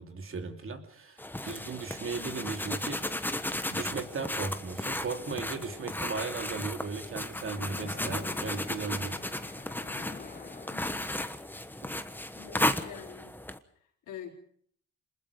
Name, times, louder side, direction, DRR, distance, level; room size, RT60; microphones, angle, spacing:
voice 1, 0.0-3.0 3.7-9.1, right 4 dB, 45° right, 5 dB, 3.0 m, -37 dB
sound 1, 1.2-13.6, left 1 dB, 5° left, 1.3 m, -35 dB
voice 2, 2.2-2.5 10.7-11.1 12.3-13.4 13.8-14.3, left 8 dB, 80° left, 2 dB, 4.6 m, -46 dB
Splash splatter, 7.4-11.4, left 5 dB, 30° left, 1.5 m, -46 dB
26.5 x 20.5 x 5.2 m, 0.62 s
cardioid pair, 90°, 30 cm